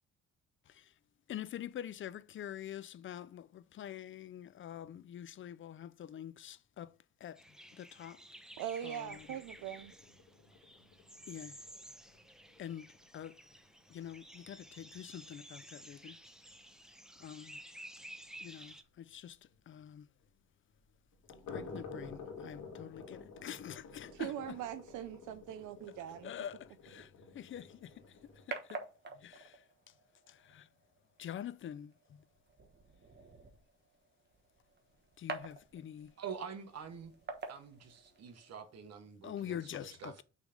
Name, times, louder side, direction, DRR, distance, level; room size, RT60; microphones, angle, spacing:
voice 1, 1.3-6.9 7.2-7.4 7.7-8.2 8.8-9.3 11.3-11.6 12.6-12.9 13.1-13.4 13.9-16.2 17.2-17.6 18.4-19.4 19.7-20.1 21.5-24.3 26.2-28.2 28.5-28.8 29.1-29.6 30.3-30.7 31.2-32.2 35.2-36.1 39.2-40.2, left 10 dB, 40° left, 0.4 m, -46 dB
sound 1, 7.4-18.8, right 1 dB, ahead, 0.7 m, -53 dB
voice 2, 8.6-9.9 24.1-26.3, right 11 dB, 85° right, 0.5 m, -41 dB
sound 2, 9.0-14.9 15.2-15.3 15.7-15.8 16.2-16.3 16.6-16.7 19.5-19.6 21.1-28.5, left 4 dB, 80° left, 1.9 m, -51 dB
sound 3, 27.5-38.5, right 4 dB, 35° right, 1.2 m, -49 dB
voice 3, 36.2-37.1 37.5-40.1, right 7 dB, 60° right, 1.1 m, -46 dB
6.3 x 3.4 x 5.0 m
cardioid pair, 90°, 30 cm